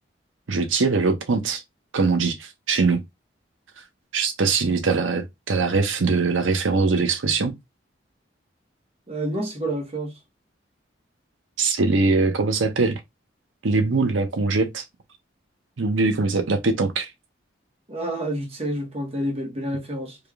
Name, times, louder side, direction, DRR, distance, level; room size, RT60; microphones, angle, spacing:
voice 1, 0.5-1.6 1.9-3.0 3.8-3.9 4.1-7.5 11.6-13.0 13.6-14.8 15.8-17.1, right 4 dB, 90° right, 0.7 m, -22 dB
voice 2, 9.1-10.1 17.9-20.2, right 1 dB, 30° right, 0.9 m, -28 dB
3.4 x 2.3 x 3.4 m
head